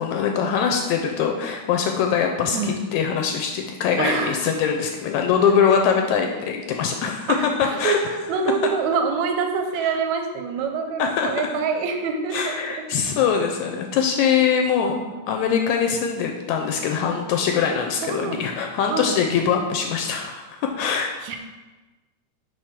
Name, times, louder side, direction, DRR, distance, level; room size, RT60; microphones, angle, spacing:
voice 1, 0.0-7.4 7.8-8.0 11.0-11.3 12.3-15.0 15.3-21.2, left 7 dB, 80° left, 3 dB, 1.8 m, -22 dB
voice 2, 4.0-4.5 7.3-12.8 14.8-15.2 18.0-18.5 18.9-19.2 21.2-21.4, right 5 dB, 80° right, 5 dB, 1.8 m, -26 dB
5.0 x 4.6 x 5.8 m, 1.2 s
omnidirectional pair, 3.5 m